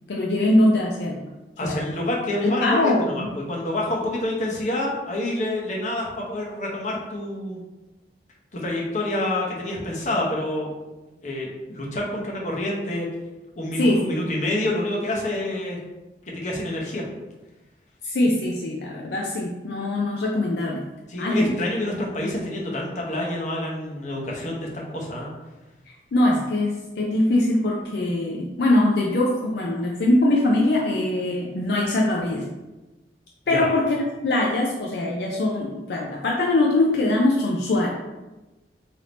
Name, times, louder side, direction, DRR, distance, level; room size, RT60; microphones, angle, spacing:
voice 1, 0.1-1.3 1.6-1.8 2.4-3.3 13.8-14.2 18.0-20.8 21.2-21.5 26.1-32.5 33.5-38.0, left 1 dB, 65° left, -2 dB, 0.4 m, -22 dB
voice 2, 1.6-2.9 3.3-7.6 8.5-10.7 11.2-13.1 13.6-15.8 16.3-17.0 21.1-25.3 33.5-33.7, left 1 dB, 40° left, -2 dB, 0.8 m, -27 dB
3.4 x 2.7 x 3.8 m, 1.1 s
head